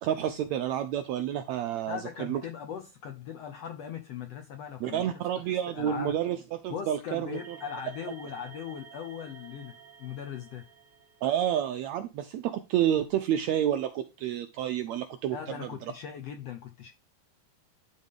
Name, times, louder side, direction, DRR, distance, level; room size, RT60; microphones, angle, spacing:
voice 1, 0.0-2.4 4.8-7.6 11.2-15.7, right 10 dB, 80° right, 1.6 m, -29 dB
voice 2, 1.9-6.2 6.7-10.6 15.3-16.9, left 8 dB, 75° left, 1.5 m, -39 dB
sound 1, 7.3-11.6, right 7 dB, 65° right, 2.4 m, -51 dB
12.0 x 4.1 x 3.6 m
omnidirectional pair, 3.9 m